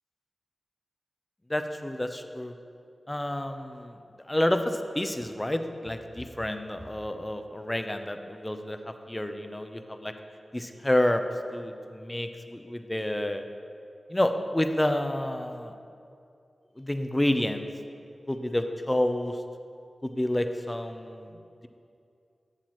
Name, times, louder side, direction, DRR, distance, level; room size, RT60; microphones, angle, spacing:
voice 1, 1.5-2.5 3.1-3.9 4.3-10.1 10.5-11.2 11.5-13.4 14.1-15.8 16.8-17.7 18.3-19.4 20.0-21.4, left 1 dB, 20° left, 7 dB, 0.6 m, -29 dB
11.5 x 7.4 x 3.1 m, 2.5 s
cardioid pair, 40°, 0 cm